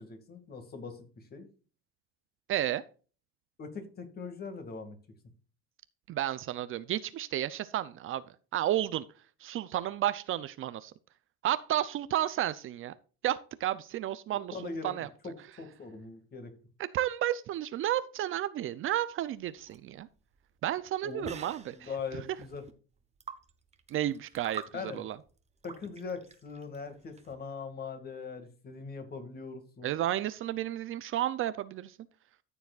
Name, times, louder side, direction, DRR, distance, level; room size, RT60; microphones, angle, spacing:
voice 1, 0.0-1.5 3.6-5.0 14.3-16.5 21.0-21.4 21.7-22.7 24.7-25.0 25.6-30.0, left 4 dB, 30° left, 2.3 m, -41 dB
voice 2, 2.5-2.8 6.1-8.2 8.5-9.0 9.4-10.9 11.4-12.9 13.2-15.1 16.9-20.1 20.6-21.9 23.9-25.2 29.8-32.0, right 12 dB, 45° right, 0.6 m, -32 dB
sound 1, 19.4-27.4, right 6 dB, 20° right, 1.1 m, -48 dB
13.5 x 7.0 x 2.5 m
cardioid pair, 120°, 30 cm